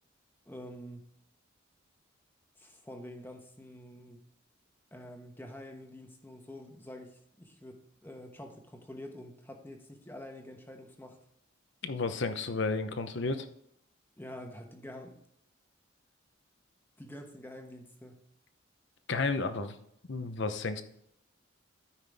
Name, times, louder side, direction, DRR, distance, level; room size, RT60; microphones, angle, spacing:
voice 1, 0.5-1.0 2.6-4.2 4.9-11.2 14.2-15.2 17.0-18.2, left 1 dB, 10° left, 3 dB, 1.2 m, -47 dB
voice 2, 11.8-13.5 19.1-19.8 20.1-20.8, left 3 dB, 60° left, 9 dB, 0.8 m, -32 dB
13.0 x 5.8 x 3.5 m, 0.73 s
head